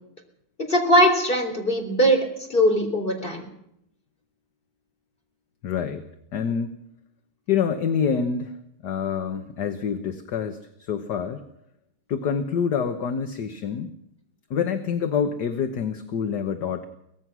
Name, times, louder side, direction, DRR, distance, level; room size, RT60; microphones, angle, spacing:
voice 1, 0.7-2.2 2.5-3.4, equal, 25° left, 3 dB, 3.8 m, -20 dB
voice 2, 5.6-6.0 6.3-6.7 7.5-8.5 8.8-11.4 12.1-13.9 14.5-16.9, left 7 dB, 55° left, 7 dB, 1.6 m, -26 dB
24.0 x 18.0 x 6.1 m, 0.79 s
omnidirectional pair, 2.3 m